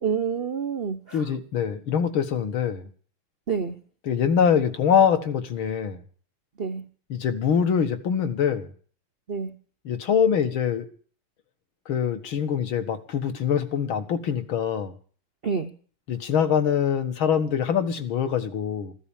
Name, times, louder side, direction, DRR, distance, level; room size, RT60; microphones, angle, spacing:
voice 1, 0.0-1.3 3.5-3.8 6.6-6.9 9.3-9.5 15.4-15.7, right 6 dB, 60° right, 8 dB, 0.6 m, -28 dB
voice 2, 1.1-2.9 4.1-6.0 7.1-8.7 9.9-10.8 11.9-14.9 16.1-18.9, left 7 dB, 65° left, 8 dB, 2.3 m, -24 dB
15.0 x 12.5 x 7.2 m, 0.44 s
omnidirectional pair, 2.4 m